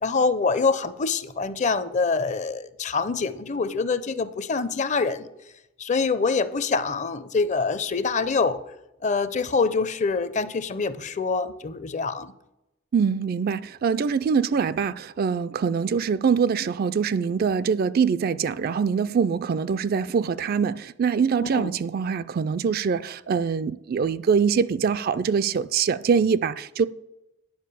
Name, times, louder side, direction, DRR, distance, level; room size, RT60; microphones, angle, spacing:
voice 1, 0.0-5.3 5.8-8.6 9.0-12.3 21.4-21.7, left 4 dB, 35° left, 0.5 m, -25 dB
voice 2, 12.9-26.9, right 6 dB, 50° right, 0.3 m, -24 dB
10.5 x 5.2 x 6.8 m
head